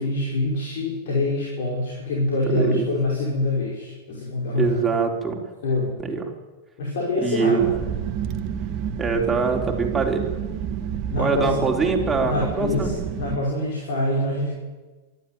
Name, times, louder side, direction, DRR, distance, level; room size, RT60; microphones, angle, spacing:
voice 1, 0.0-4.9 5.6-5.9 6.8-7.7 11.1-11.6 12.2-14.5, left 2 dB, 55° left, -2 dB, 5.7 m, -25 dB
voice 2, 2.5-2.9 4.5-5.4 6.0-6.3 7.2-7.6 9.0-10.3 11.2-12.9, right 5 dB, 10° right, 0 dB, 4.4 m, -23 dB
sound 1, 7.6-13.4, right 8 dB, 40° right, 1.4 m, -29 dB
24.5 x 12.5 x 9.3 m, 1.2 s
figure-of-eight pair, 90°, 0 cm